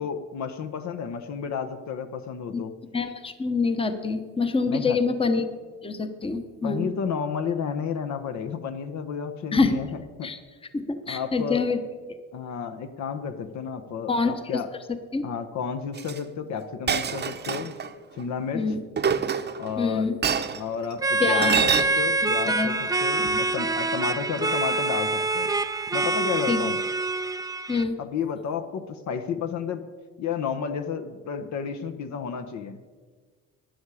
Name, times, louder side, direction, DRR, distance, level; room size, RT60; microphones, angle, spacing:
voice 1, 0.0-2.7 4.7-5.0 6.6-10.3 11.1-11.7 12.3-14.7 15.2-17.7 18.1-18.6 19.6-20.1 20.5-22.7 23.0-25.5 25.9-26.8 28.0-29.8 30.2-32.8, left 6 dB, 60° left, 8 dB, 0.9 m, -31 dB
voice 2, 2.9-5.5 5.8-6.9 9.5-9.8 10.2-10.4 10.7-11.8 14.1-14.3 15.1-15.2 18.5-18.8 19.8-20.2 21.2-21.8 22.2-22.7 23.2-23.4 26.5-26.6 27.7-27.9, left 4 dB, 15° left, 8 dB, 0.9 m, -26 dB
Chink clink, 16.0-16.2 16.9-17.9 19.0-19.7 20.2-20.6 21.4-21.8, right 7 dB, 30° right, 0.8 m, -25 dB
sound 1, 21.0-27.8, right 3 dB, 10° right, 0.4 m, -26 dB
12.5 x 9.7 x 4.9 m, 1.5 s
cardioid pair, 95°, 32 cm